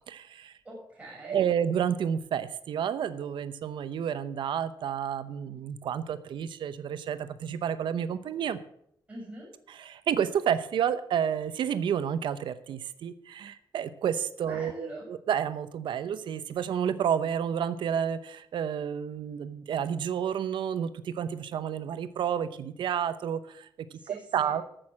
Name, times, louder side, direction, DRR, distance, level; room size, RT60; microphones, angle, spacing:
voice 1, 0.1-0.5 1.2-8.6 9.7-23.7 23.9-24.6, right 8 dB, 80° right, 12 dB, 0.8 m, -30 dB
voice 2, 0.6-1.5 9.1-9.5 14.4-15.1 24.0-24.5, right 1 dB, 15° right, -3 dB, 6.6 m, -43 dB
14.0 x 6.3 x 7.3 m, 0.71 s
wide cardioid pair, 160°, 8 cm